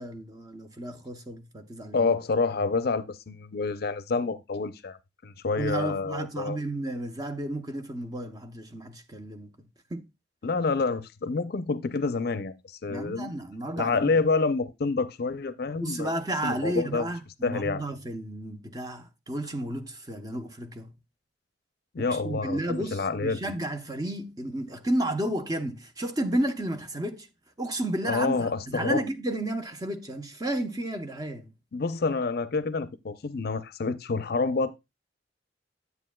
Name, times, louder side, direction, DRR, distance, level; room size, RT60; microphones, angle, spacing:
voice 1, 0.0-2.1 5.6-10.1 12.9-14.1 15.7-20.9 22.0-27.3 27.6-31.5, right 1 dB, 20° right, 0.9 m, -32 dB
voice 2, 1.9-5.0 5.2-6.6 10.4-12.5 12.8-13.4 13.8-16.1 16.4-17.1 17.4-17.8 21.9-23.4 28.1-29.0 31.7-34.7, left 4 dB, 60° left, 0.5 m, -28 dB
9.8 x 8.0 x 2.3 m
head